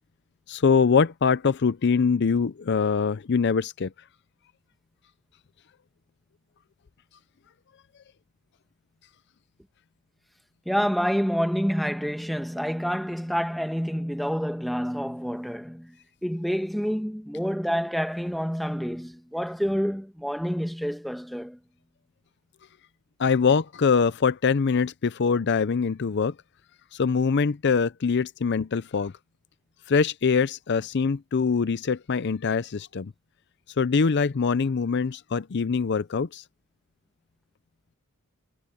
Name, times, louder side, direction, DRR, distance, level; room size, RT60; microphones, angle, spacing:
voice 1, 0.5-3.9 23.2-26.3 26.9-29.1 29.9-33.1 33.8-36.4, left 5 dB, 55° left, 0.5 m, -23 dB
voice 2, 10.6-16.0 16.2-21.6, equal, ahead, 1.3 m, -28 dB
head